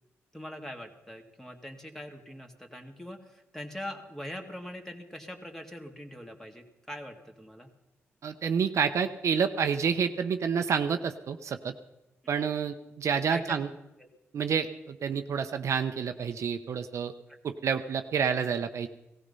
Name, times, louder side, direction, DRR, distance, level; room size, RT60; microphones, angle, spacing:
voice 1, 0.3-7.7 12.2-12.3 13.3-13.6 14.0-14.1, left 1 dB, 5° left, 3 dB, 2.2 m, -42 dB
voice 2, 8.2-11.7 12.3-13.7 14.3-17.1 17.4-18.9, right 6 dB, 65° right, 8 dB, 0.8 m, -29 dB
17.5 x 14.5 x 5.5 m, 0.95 s
cardioid pair, 70°, 5 cm